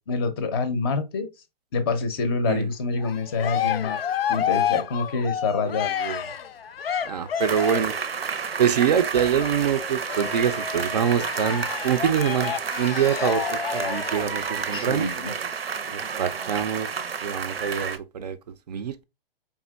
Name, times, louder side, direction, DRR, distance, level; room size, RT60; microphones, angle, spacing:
voice 1, 0.1-1.3 1.7-4.0 4.3-5.9 14.7-15.3, left 4 dB, 25° left, 0.5 m, -26 dB
Cheering, 3.0-8.0 8.7-14.3, left 9 dB, 80° left, 0.5 m, -30 dB
voice 2, 5.8-6.2 7.0-7.9 8.6-15.1 15.9-19.0, right 8 dB, 45° right, 0.4 m, -25 dB
sound 1, 7.4-18.0, right 6 dB, 85° right, 0.7 m, -31 dB
4.3 x 3.6 x 2.2 m
hypercardioid pair, 135°, 29 cm